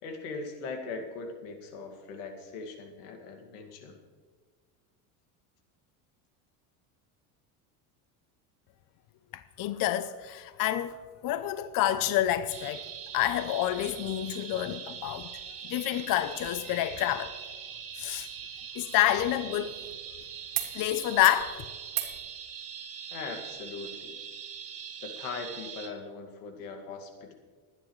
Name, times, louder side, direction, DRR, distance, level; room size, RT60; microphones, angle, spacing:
voice 1, 0.0-4.0 23.1-24.1 25.0-27.3, left 4 dB, 85° left, 2.2 m, -40 dB
voice 2, 9.3-11.0 11.2-12.8 13.1-15.3 15.6-17.4 18.0-18.3 18.8-19.7 20.7-21.6, left 13 dB, 50° left, 0.7 m, -28 dB
sound 1, 12.5-25.9, right 8 dB, 50° right, 3.0 m, -42 dB
sound 2, 18.3-20.1 20.5-20.7 21.0-21.4 21.9-22.2 23.5-23.6, right 13 dB, 85° right, 1.9 m, -38 dB
29.0 x 9.8 x 3.2 m
supercardioid pair, 105°, 44 cm